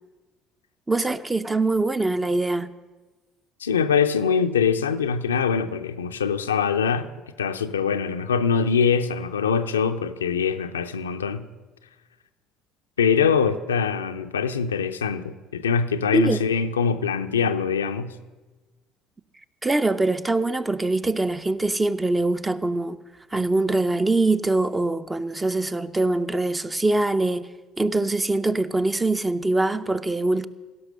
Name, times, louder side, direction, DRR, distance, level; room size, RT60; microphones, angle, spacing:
voice 1, 0.9-2.7 16.1-16.4 19.6-23.0 23.3-27.5 27.8-30.5, right 2 dB, 15° right, 0.6 m, -23 dB
voice 2, 3.6-7.1 7.4-11.5 13.0-18.1, left 6 dB, 85° left, 0.4 m, -23 dB
16.5 x 5.9 x 6.5 m
figure-of-eight pair, 55°, 0 cm